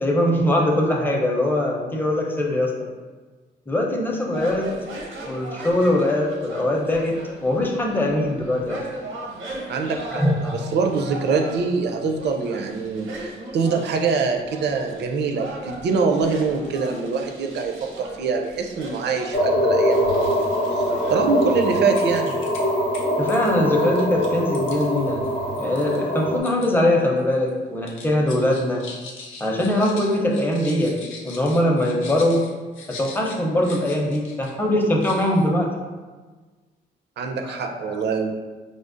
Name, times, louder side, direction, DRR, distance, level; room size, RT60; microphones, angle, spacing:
voice 1, 0.0-2.9 3.7-4.7 5.2-8.8 10.1-10.6 23.2-25.2 25.6-28.9 29.4-31.0 31.2-32.4 32.9-35.7 37.5-38.0, left 1 dB, 10° left, -1 dB, 0.6 m, -22 dB
sound 1, 4.3-21.8, right 2 dB, 85° right, 0.7 m, -38 dB
voice 2, 9.7-10.2 10.5-13.1 13.5-20.8 21.1-22.3 37.2-38.3, right 4 dB, 60° right, 3 dB, 0.5 m, -24 dB
sound 2, 19.3-26.4, equal, 45° left, 0.7 m, -23 dB
sound 3, 21.5-21.6 21.9-22.6 22.9-26.7 27.0-27.5 27.8-34.5 34.8-35.5, left 4 dB, 85° left, 0.6 m, -41 dB
5.0 x 2.0 x 2.5 m, 1.4 s
cardioid pair, 90°, 20 cm